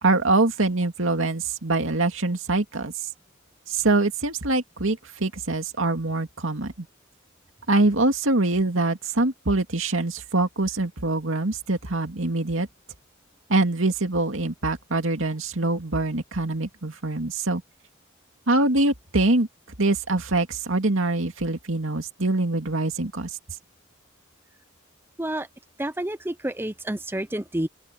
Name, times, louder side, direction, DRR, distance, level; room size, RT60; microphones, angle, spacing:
voice 1, 0.0-2.9 3.7-6.9 7.7-12.7 13.5-17.6 18.5-19.5 19.8-23.3, right 2 dB, 70° right, 2.5 m, -24 dB
voice 2, 25.8-27.7, right 1 dB, 10° right, 0.9 m, -29 dB
open air
head